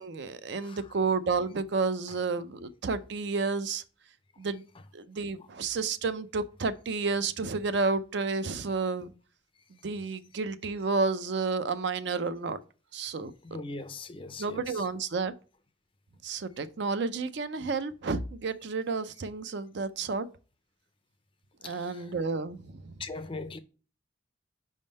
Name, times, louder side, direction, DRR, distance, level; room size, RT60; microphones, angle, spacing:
voice 1, 0.0-3.8 4.4-4.6 4.9-9.1 9.8-12.6 12.9-13.3 14.4-15.3 16.2-20.3 21.6-22.8, right 4 dB, 55° right, 0.5 m, -31 dB
voice 2, 13.4-14.9 21.6-22.1 23.0-23.6, left 3 dB, 25° left, 0.4 m, -40 dB
5.2 x 3.6 x 5.2 m
head